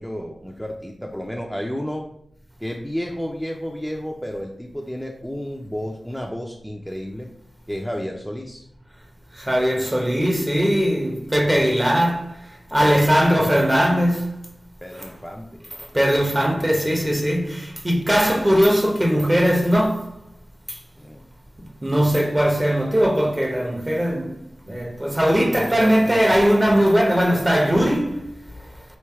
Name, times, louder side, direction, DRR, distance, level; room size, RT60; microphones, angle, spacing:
voice 1, 0.0-2.0 2.6-7.3 7.7-8.6 12.8-13.5 14.8-15.6 21.0-21.3 25.4-26.2, equal, ahead, 0.5 m, -32 dB
voice 2, 9.3-14.4 14.9-15.1 15.8-20.1 20.7-20.8 21.6-24.4 24.7-28.7, equal, 20° right, 0.9 m, -20 dB
3.3 x 3.1 x 4.6 m
cardioid pair, 50°, 0 cm